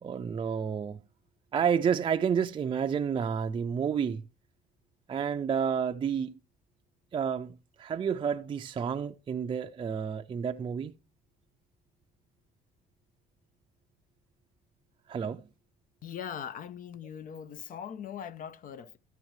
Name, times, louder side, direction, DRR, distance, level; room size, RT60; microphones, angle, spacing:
voice 1, 0.0-1.0 1.5-4.2 5.1-6.3 7.1-10.9 15.1-15.4, right 7 dB, 30° right, 0.5 m, -30 dB
voice 2, 16.0-19.0, left 8 dB, 55° left, 0.7 m, -40 dB
13.0 x 8.0 x 3.1 m
cardioid pair, 110°, 17 cm